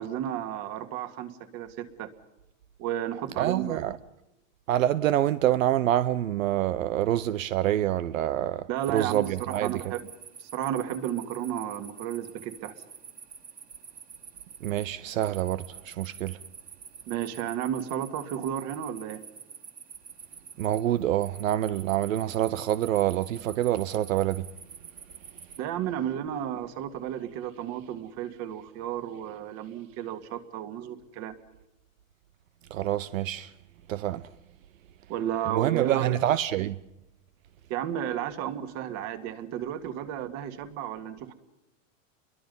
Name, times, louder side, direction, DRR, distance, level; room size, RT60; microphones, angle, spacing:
voice 1, 0.0-2.1 2.8-3.9 8.7-10.1 10.4-12.8 17.1-19.2 25.6-31.4 35.1-36.2 37.7-41.3, right 10 dB, 40° right, 2.2 m, -33 dB
voice 2, 3.4-3.9 4.7-9.8 14.6-16.4 20.6-24.5 32.7-33.5 33.9-34.3 35.5-36.8, right 12 dB, 80° right, 0.9 m, -26 dB
sound 1, 8.8-25.6, right 7 dB, 20° right, 2.1 m, -47 dB
29.0 x 22.5 x 5.5 m
hypercardioid pair, 135°, 40 cm